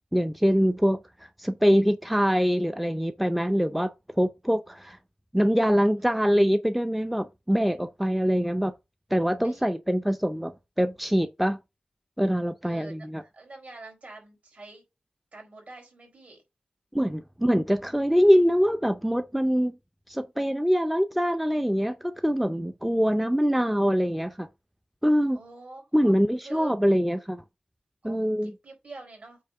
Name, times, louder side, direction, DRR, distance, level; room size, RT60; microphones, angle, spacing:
voice 1, 0.1-1.0 1.4-5.0 5.3-8.7 9.1-10.5 10.8-11.6 12.2-13.2 16.9-19.8 20.1-24.5 25.0-25.4 25.9-27.4 28.0-28.5, equal, 5° right, 0.5 m, -24 dB
voice 2, 12.6-14.8 15.3-16.4 23.1-23.2 25.3-26.1 26.4-26.7 28.0-29.4, right 3 dB, 60° right, 4.5 m, -46 dB
8.4 x 2.9 x 5.6 m
wide cardioid pair, 125°, 3 cm